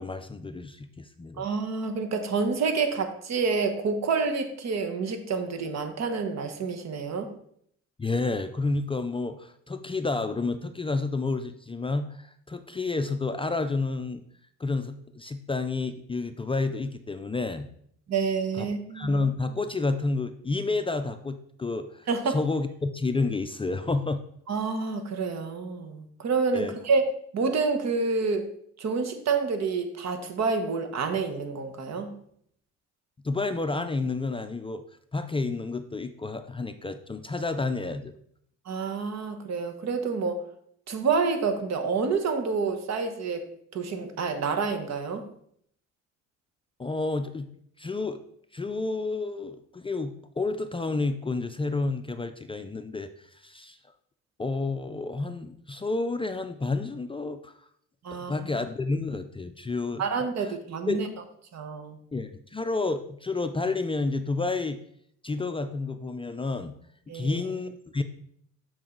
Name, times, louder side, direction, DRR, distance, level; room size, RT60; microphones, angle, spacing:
voice 1, 0.0-1.5 8.0-14.2 14.6-17.7 18.5-18.7 18.9-24.2 26.5-26.7 33.2-34.8 35.1-38.2 46.8-47.5 47.8-48.2 48.5-53.8 54.4-57.5 58.1-60.6 60.9-61.0 62.1-64.8 65.2-66.7 67.1-68.0, left 3 dB, 20° left, 8 dB, 0.4 m, -30 dB
voice 2, 1.4-7.3 18.1-19.1 22.1-22.3 24.5-27.0 27.3-28.5 28.8-32.1 38.7-40.4 40.9-43.4 43.7-45.2 58.0-58.3 60.0-61.1 61.5-62.0 67.1-67.4, right 4 dB, 60° right, 7 dB, 1.2 m, -28 dB
7.7 x 4.6 x 3.8 m, 0.67 s
cardioid pair, 90°, 30 cm